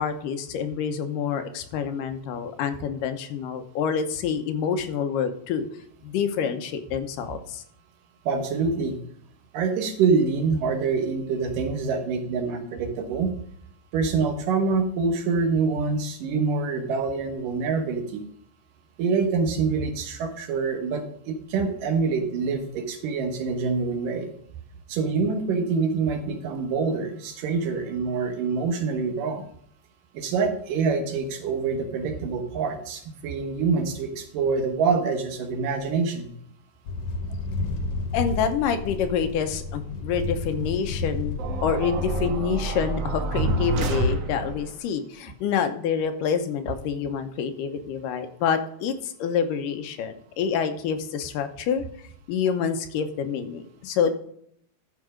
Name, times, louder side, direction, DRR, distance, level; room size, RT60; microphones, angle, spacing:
voice 1, 0.0-5.7 6.0-7.6 38.1-51.8 52.3-54.1, left 7 dB, 85° left, 8 dB, 2.6 m, -27 dB
voice 2, 8.3-9.0 9.5-13.3 13.9-18.2 19.0-24.3 24.9-29.4 30.1-36.3, right 4 dB, 85° right, 5 dB, 3.0 m, -25 dB
sound 1, 36.9-42.3, left 3 dB, 70° left, 2.1 m, -31 dB
sound 2, 41.4-44.7, right 2 dB, 60° right, 1.9 m, -27 dB
13.0 x 4.7 x 5.0 m, 0.67 s
omnidirectional pair, 3.7 m